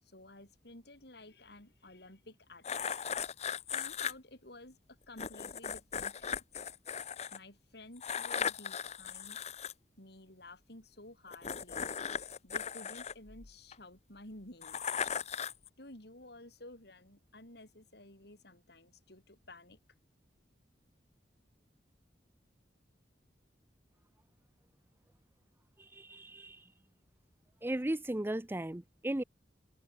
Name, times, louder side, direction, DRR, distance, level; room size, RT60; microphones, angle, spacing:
voice 1, 0.0-2.9 3.7-6.4 7.3-9.4 10.0-11.9 12.4-14.8 15.8-19.8, left 2 dB, 65° left, 7.3 m, -53 dB
sound 1, 2.6-4.1 5.2-7.4 8.0-9.7 11.3-13.8 14.6-15.7, left 7 dB, 40° left, 0.9 m, -37 dB
voice 2, 25.8-26.7 27.6-29.2, right 1 dB, 15° right, 0.6 m, -36 dB
head